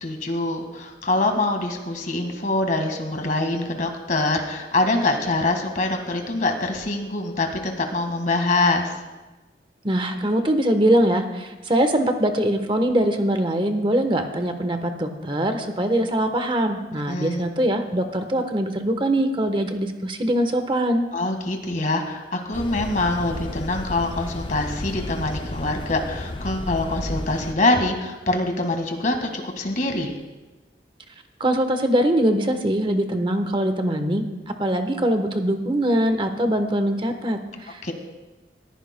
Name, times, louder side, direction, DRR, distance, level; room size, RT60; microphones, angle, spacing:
voice 1, 0.0-9.0 17.1-17.5 21.1-30.1 37.8-37.9, left 2 dB, 45° left, 4 dB, 1.7 m, -24 dB
voice 2, 9.8-21.1 31.4-37.8, right 1 dB, 30° right, 7 dB, 1.1 m, -22 dB
sound 1, 22.5-27.5, left 1 dB, 30° left, 0.5 m, -32 dB
21.0 x 15.0 x 2.2 m, 1.2 s
head